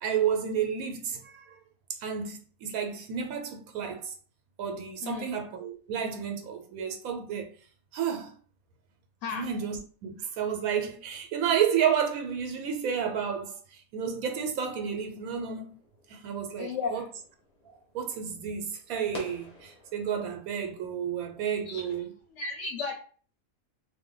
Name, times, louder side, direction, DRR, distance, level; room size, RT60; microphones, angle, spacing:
voice 1, 0.0-1.6 2.0-4.1 4.6-7.5 7.9-8.4 9.3-15.7 16.1-17.1 17.9-22.1, right 8 dB, 85° right, 1.1 m, -31 dB
sound 1, 14.9-22.0, left 2 dB, 35° left, 0.7 m, -51 dB
voice 2, 16.6-17.0 21.7-21.8 22.3-22.9, left 5 dB, 70° left, 0.9 m, -33 dB
2.5 x 2.1 x 3.7 m
omnidirectional pair, 1.5 m